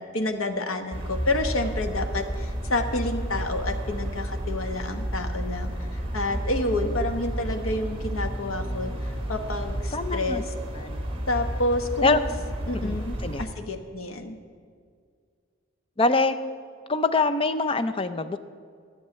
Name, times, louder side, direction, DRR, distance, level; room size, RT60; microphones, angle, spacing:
voice 1, 0.0-10.4 11.3-12.2 12.7-14.4, left 2 dB, 90° left, 6 dB, 1.2 m, -29 dB
sound 1, 0.9-13.5, right 1 dB, 25° right, 1.6 m, -31 dB
voice 2, 9.9-10.4 10.7-11.0 12.0-12.2 12.7-13.0 13.2-13.4 16.0-16.3 16.9-18.4, left 3 dB, 25° left, 10 dB, 0.5 m, -24 dB
11.5 x 6.6 x 9.6 m, 2.1 s
head